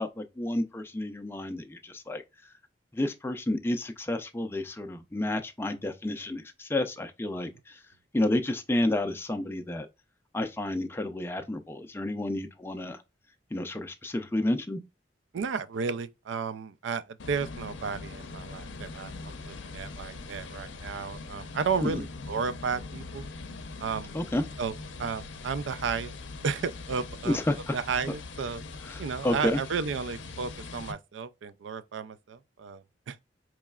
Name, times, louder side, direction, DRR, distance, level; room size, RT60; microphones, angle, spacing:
voice 1, 0.0-2.2 2.9-7.8 8.1-9.9 10.3-13.0 13.5-14.8 21.8-22.0 24.1-24.4 27.2-27.8 28.8-29.6, left 1 dB, 15° left, 0.4 m, -30 dB
voice 2, 15.3-23.3 23.8-24.1 24.6-24.7 25.0-26.1 26.4-27.4 27.7-28.6 29.0-33.2, right 5 dB, 80° right, 0.4 m, -33 dB
sound 1, 17.2-30.9, left 3 dB, 85° left, 0.6 m, -42 dB
4.7 x 3.1 x 2.3 m
head